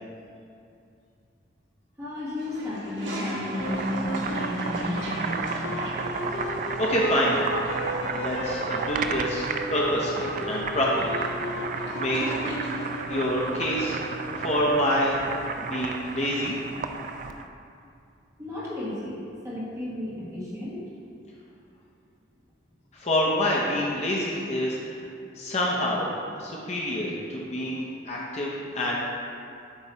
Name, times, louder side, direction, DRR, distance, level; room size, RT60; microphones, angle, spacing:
voice 1, 2.0-5.7 18.4-20.8, left 1 dB, 15° right, -8 dB, 1.5 m, -33 dB
Toilet flush, 2.4-13.0, right 1 dB, 75° right, 1.3 m, -40 dB
Boiling, 3.4-17.5, right 4 dB, 45° right, 0.3 m, -33 dB
sound 1, 3.6-14.3, left 1 dB, 75° left, 0.5 m, -35 dB
voice 2, 6.8-7.4 8.1-11.2 12.0-12.4 13.1-14.0 14.3-15.2 15.6-16.6 22.9-24.8 25.4-26.1 26.4-29.0, equal, 35° left, -4 dB, 0.7 m, -27 dB
8.2 x 3.1 x 5.4 m, 2.5 s
head